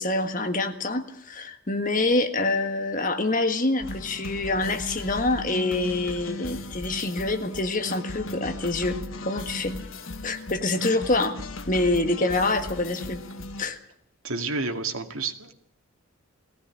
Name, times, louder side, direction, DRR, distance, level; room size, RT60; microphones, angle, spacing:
voice 1, 0.0-9.7 10.2-11.4 11.7-13.2 13.6-13.8, left 2 dB, 40° left, 7 dB, 1.6 m, -26 dB
sound 1, 3.8-13.6, left 2 dB, 70° left, 1.4 m, -37 dB
voice 2, 14.2-15.5, right 3 dB, 80° right, 4 dB, 2.3 m, -30 dB
19.0 x 16.0 x 9.9 m, 0.71 s
head